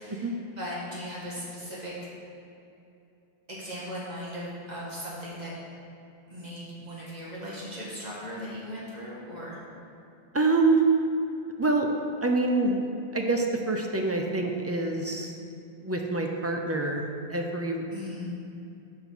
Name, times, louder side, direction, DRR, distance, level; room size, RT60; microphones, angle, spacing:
voice 1, 0.0-2.1 3.5-5.5 6.3-9.6 17.9-18.3, equal, 45° right, -7 dB, 1.8 m, -38 dB
voice 2, 10.3-10.8 11.6-11.9 12.2-12.8 13.1-15.4 15.8-17.8, right 3 dB, 20° right, 2 dB, 0.5 m, -26 dB
5.9 x 5.4 x 6.2 m, 2.7 s
omnidirectional pair, 1.0 m